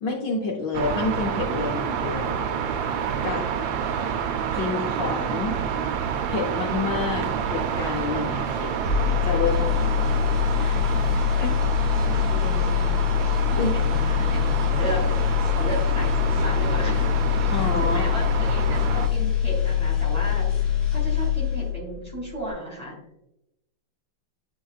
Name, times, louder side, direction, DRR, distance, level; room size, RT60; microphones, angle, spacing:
voice 1, 0.0-2.5 3.2-3.5 4.5-5.5 6.3-8.7 9.2-9.9 10.5-11.7 13.6-13.7 17.5-18.1, left 4 dB, 65° left, 0 dB, 1.4 m, -29 dB
sound 1, 0.7-19.1, right 7 dB, 75° right, 1.3 m, -28 dB
sound 2, 8.8-22.0 22.3-22.5, left 9 dB, 30° left, 1.8 m, -23 dB
voice 2, 12.0-15.0 15.5-23.0, right 1 dB, 20° right, -4 dB, 2.4 m, -35 dB
9.2 x 4.6 x 2.4 m, 0.88 s
omnidirectional pair, 2.2 m